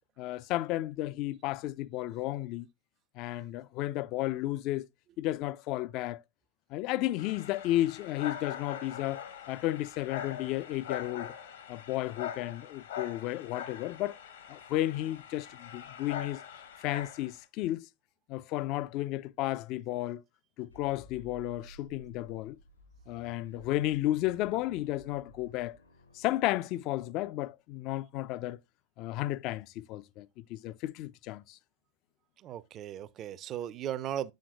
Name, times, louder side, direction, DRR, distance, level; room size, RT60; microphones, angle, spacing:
voice 1, 0.2-2.7 3.2-4.9 5.2-6.2 6.7-11.3 11.7-14.2 14.5-16.4 16.8-17.9 18.3-20.2 20.6-22.6 23.1-25.8 26.1-28.6 29.0-31.6, left 15 dB, 40° left, 0.3 m, -33 dB
sound 1, 7.2-17.4, left 9 dB, 65° left, 1.1 m, -43 dB
sound 2, 20.7-26.9, equal, 80° left, 3.5 m, -55 dB
voice 2, 32.4-34.3, right 11 dB, 30° right, 0.4 m, -37 dB
7.3 x 6.4 x 2.3 m
figure-of-eight pair, 90°, 0 cm